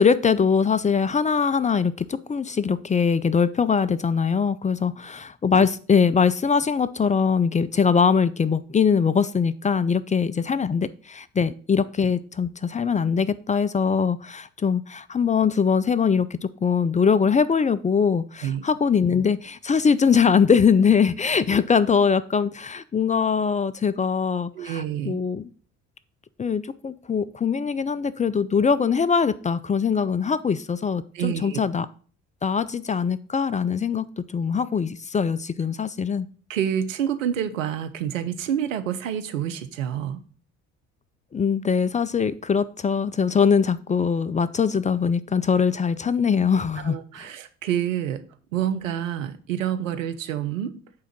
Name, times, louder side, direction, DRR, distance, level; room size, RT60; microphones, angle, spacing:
voice 1, 0.0-25.5 26.4-31.9 32.4-36.3 41.3-47.0, left 6 dB, 20° left, 16 dB, 0.4 m, -22 dB
voice 2, 24.5-25.2 31.1-31.6 36.5-40.2 46.8-48.2 48.5-50.7, right 10 dB, 90° right, 10 dB, 0.7 m, -28 dB
8.7 x 3.7 x 5.9 m, 0.42 s
hypercardioid pair, 55°, 38 cm